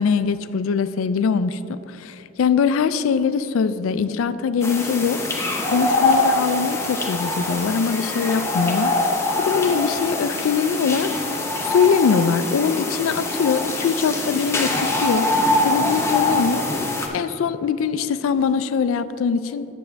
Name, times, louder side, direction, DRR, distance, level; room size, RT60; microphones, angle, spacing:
voice 1, 0.0-5.2 5.7-8.9 9.4-11.1 11.6-15.3 15.6-16.6 17.1-19.7, left 6 dB, 75° left, 14 dB, 0.3 m, -22 dB
sound 1, 4.6-17.1, left 2 dB, 15° left, 0.6 m, -23 dB
9.4 x 6.8 x 3.4 m, 2.8 s
head